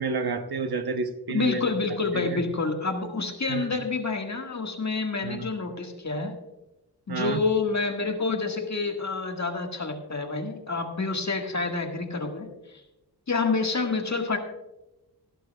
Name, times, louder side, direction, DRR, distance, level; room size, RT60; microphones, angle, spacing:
voice 1, 0.0-1.6 2.1-2.4 3.5-3.8 5.2-5.5 7.1-7.4, right 4 dB, 65° right, 8 dB, 0.9 m, -30 dB
voice 2, 1.3-6.3 7.1-12.5 13.3-14.4, left 4 dB, 45° left, 3 dB, 1.8 m, -28 dB
17.5 x 11.5 x 2.3 m, 1.0 s
cardioid pair, 60°, 40 cm